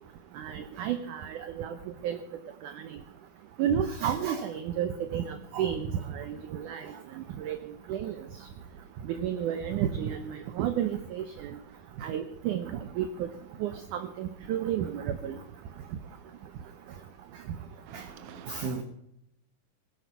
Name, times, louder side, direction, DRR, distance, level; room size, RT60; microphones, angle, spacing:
voice 1, 0.4-1.7 2.0-2.2 2.6-2.7 3.6-5.9 6.1-6.8 7.4-7.6 7.9-8.1 9.2-11.5 12.0-12.7 13.0-13.3 13.6-15.3 17.9-18.0 18.5-18.7, right 9 dB, 75° right, 10 dB, 2.0 m, -31 dB
voice 2, 17.9-18.8, right 4 dB, 55° right, 8 dB, 1.9 m, -38 dB
18.5 x 10.5 x 5.6 m, 0.78 s
omnidirectional pair, 4.3 m